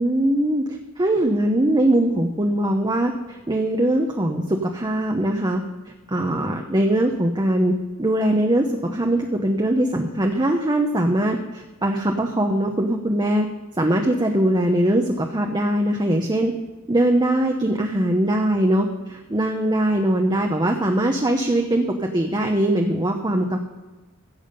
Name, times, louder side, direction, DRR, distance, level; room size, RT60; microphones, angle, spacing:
voice 1, 0.0-0.6 1.0-5.6 6.1-7.7 8.0-13.5 13.8-16.5 16.9-21.8 22.1-23.6, right 1 dB, 20° right, 2 dB, 0.9 m, -21 dB
15.5 x 7.2 x 5.5 m, 1.2 s
head